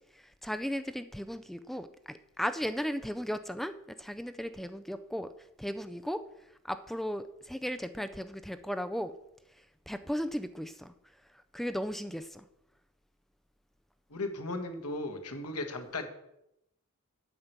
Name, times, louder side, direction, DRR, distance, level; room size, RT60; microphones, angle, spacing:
voice 1, 0.1-9.2 9.5-10.9 11.3-12.5, equal, ahead, 10 dB, 0.4 m, -36 dB
voice 2, 14.1-16.1, left 2 dB, 80° left, 6 dB, 1.6 m, -36 dB
8.9 x 5.9 x 8.0 m, 0.84 s
head